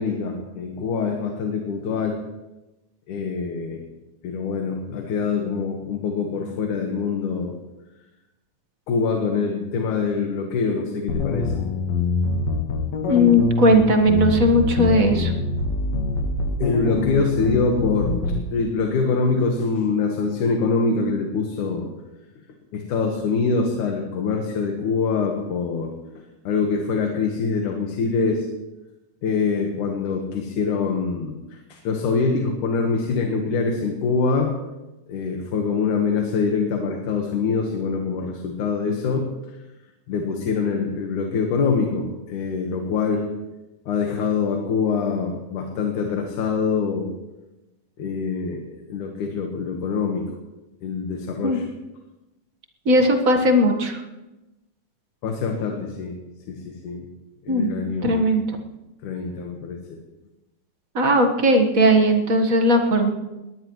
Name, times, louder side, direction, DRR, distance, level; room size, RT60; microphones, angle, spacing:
voice 1, 0.0-2.2 3.1-3.8 4.2-7.5 8.9-11.5 16.6-18.2 18.5-21.9 22.7-25.9 26.4-28.5 29.2-34.5 35.1-39.3 40.1-43.2 43.9-47.1 48.0-50.3 50.8-51.6 55.2-56.1 56.5-57.1 57.5-58.3 59.0-60.0, left 4 dB, 85° left, 2 dB, 3.0 m, -24 dB
sound 1, 11.1-18.5, left 3 dB, 65° left, 2.6 m, -24 dB
voice 2, 13.1-15.3 51.4-51.6 52.8-54.0 57.5-57.7 58.0-58.4 60.9-63.1, equal, 40° right, 4 dB, 1.2 m, -18 dB
21.5 x 18.0 x 3.1 m, 1.0 s
omnidirectional pair, 3.4 m